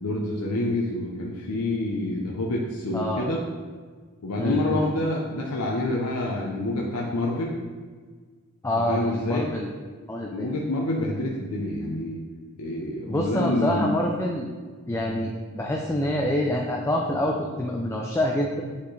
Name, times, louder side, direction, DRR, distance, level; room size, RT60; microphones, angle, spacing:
voice 1, 0.0-3.4 4.2-7.5 8.8-9.5 10.3-12.2 12.6-14.0, left 1 dB, 85° left, -2 dB, 0.7 m, -27 dB
voice 2, 2.9-3.3 4.4-4.9 8.6-9.7 10.1-10.5 13.1-14.5 14.9-18.6, left 1 dB, 10° left, 0 dB, 0.4 m, -26 dB
8.3 x 4.2 x 3.2 m, 1.5 s
head